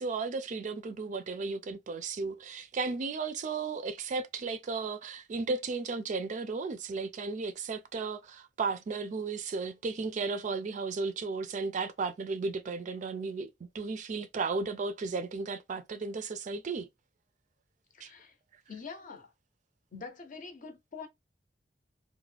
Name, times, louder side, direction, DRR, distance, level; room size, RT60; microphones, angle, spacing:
voice 1, 0.0-16.9 18.0-18.1, right 4 dB, 45° right, 0.3 m, -34 dB
voice 2, 17.9-18.3 18.7-19.3 19.9-21.1, left 4 dB, 50° left, 0.6 m, -45 dB
2.4 x 2.1 x 3.2 m
head